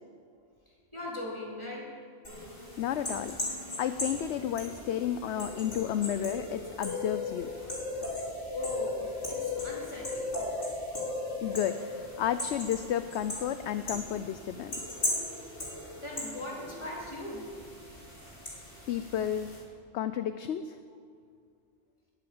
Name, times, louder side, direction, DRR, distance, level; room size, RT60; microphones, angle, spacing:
voice 1, 0.9-2.0 8.5-10.4 16.0-17.5, left 1 dB, 20° left, -4 dB, 4.0 m, -39 dB
sound 1, 2.2-19.6, left 2 dB, 45° left, 3.9 m, -37 dB
voice 2, 2.8-7.5 11.4-14.7 18.9-19.6 19.9-20.8, left 10 dB, 65° left, 11 dB, 0.8 m, -32 dB
20.0 x 8.6 x 7.8 m, 2.1 s
omnidirectional pair, 1.3 m